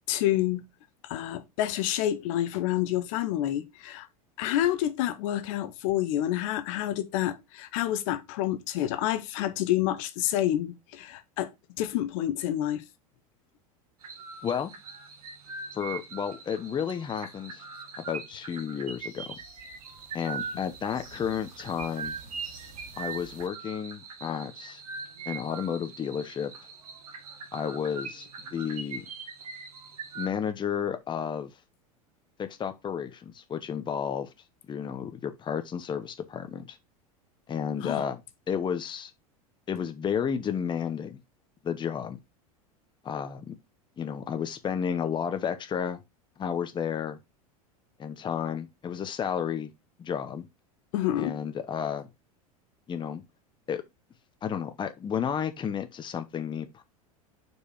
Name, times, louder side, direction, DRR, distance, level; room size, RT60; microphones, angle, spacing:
voice 1, 0.1-0.6 1.0-4.1 4.4-11.5 11.8-12.8 37.8-38.0 50.9-51.3, left 13 dB, 60° left, 1.0 m, -28 dB
sound 1, 14.0-30.3, right 5 dB, 85° right, 1.6 m, -41 dB
voice 2, 15.7-17.6 18.0-19.4 20.1-22.2 23.0-24.8 25.3-26.5 27.5-29.0 30.1-31.5 32.4-34.3 34.7-36.8 37.5-38.2 38.5-39.1 39.7-41.2 41.6-42.2 43.0-43.5 44.0-46.0 46.4-47.2 48.0-49.7 50.0-50.4 51.1-52.1 52.9-53.2 53.7-53.8 54.4-56.8, left 7 dB, 25° left, 0.9 m, -32 dB
sound 2, 18.5-23.5, right 4 dB, 45° right, 2.5 m, -51 dB
5.1 x 4.8 x 4.9 m
hypercardioid pair, 90°, 19 cm